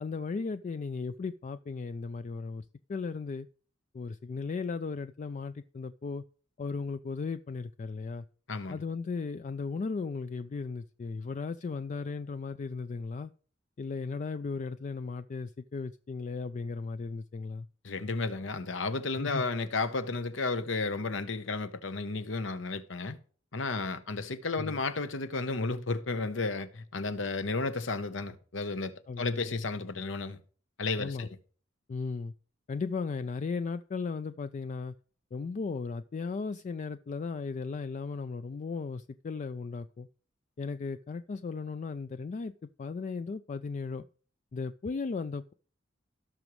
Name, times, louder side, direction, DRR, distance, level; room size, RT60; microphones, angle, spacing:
voice 1, 0.0-3.5 3.9-6.2 6.6-8.3 8.7-13.3 13.8-17.7 19.2-19.4 24.6-24.8 29.1-29.7 31.0-31.3 31.9-32.3 32.7-34.9 35.3-40.1 40.6-42.5 42.8-44.1 44.5-45.5, left 4 dB, 40° left, 0.3 m, -36 dB
voice 2, 8.5-8.8 17.8-23.2 23.5-30.4 30.8-31.3, left 3 dB, 75° left, 0.9 m, -33 dB
17.0 x 6.1 x 3.1 m
head